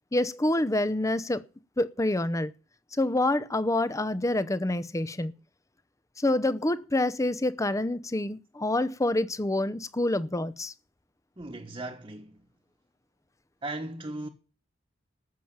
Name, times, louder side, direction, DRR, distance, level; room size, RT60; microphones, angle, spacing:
voice 1, 0.1-1.4 1.8-2.5 3.0-5.3 6.2-10.7, left 1 dB, 15° left, 0.7 m, -27 dB
voice 2, 11.4-12.5 13.6-14.3, right 2 dB, 25° right, 1.2 m, -37 dB
13.5 x 7.3 x 8.8 m
head